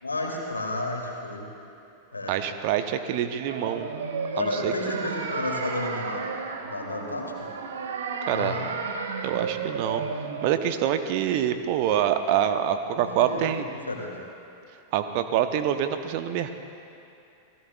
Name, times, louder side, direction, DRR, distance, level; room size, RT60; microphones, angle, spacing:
voice 1, 0.0-1.5 2.1-2.4 4.3-6.3 6.6-7.5 8.3-8.7 12.9-14.1, left 2 dB, 80° left, 0 dB, 2.5 m, -32 dB
voice 2, 2.3-3.9 4.4-4.7 8.3-8.6 9.2-10.0 10.4-13.6 14.9-16.5, right 10 dB, 45° right, 9 dB, 0.9 m, -26 dB
sound 1, 3.4-10.5, right 5 dB, 65° right, 1.1 m, -33 dB
28.5 x 18.5 x 2.4 m, 2.7 s
figure-of-eight pair, 90°, 0 cm